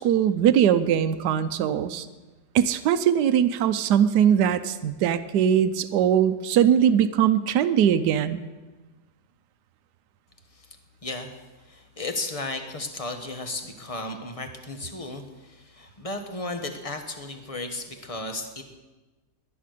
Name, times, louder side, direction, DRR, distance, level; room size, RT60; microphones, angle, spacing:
voice 1, 0.0-2.1 2.5-8.4, right 9 dB, 75° right, 9 dB, 1.3 m, -21 dB
voice 2, 11.0-11.3 11.7-18.6, left 2 dB, 20° left, 6 dB, 1.4 m, -34 dB
19.5 x 10.0 x 6.7 m, 1.2 s
omnidirectional pair, 1.8 m